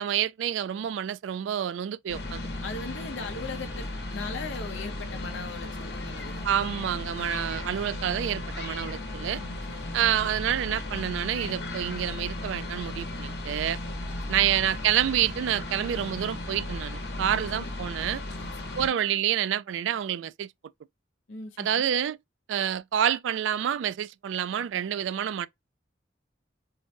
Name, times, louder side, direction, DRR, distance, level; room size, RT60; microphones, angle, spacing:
voice 1, 0.0-2.4 6.4-9.4 9.9-13.8 14.3-18.2 18.8-20.5 21.6-22.2 22.5-25.5, right 10 dB, 80° right, 0.3 m, -28 dB
sound 1, 2.1-18.9, left 2 dB, 60° left, 1.2 m, -36 dB
voice 2, 2.6-6.5 7.1-7.6 9.3-10.0 14.0-14.5 17.3-17.6 18.3-19.0 21.3-21.9, left 3 dB, 85° left, 0.8 m, -40 dB
4.6 x 2.1 x 2.5 m
head